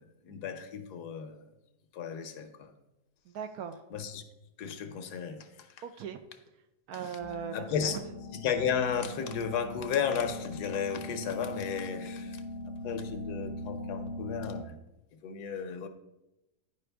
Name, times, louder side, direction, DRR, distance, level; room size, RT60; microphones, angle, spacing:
voice 1, 0.0-1.5 1.9-2.7 3.9-4.2 4.6-5.8 6.9-7.2 7.5-8.0 8.3-12.4 12.8-14.8 15.2-15.9, left 7 dB, 80° left, 8 dB, 1.3 m, -34 dB
voice 2, 3.3-3.8 5.8-6.2 6.9-8.0, right 7 dB, 70° right, 8 dB, 1.0 m, -39 dB
sound 1, 7.2-14.6, left 2 dB, 60° left, 0.8 m, -41 dB
10.5 x 4.9 x 3.4 m, 0.93 s
omnidirectional pair, 1.7 m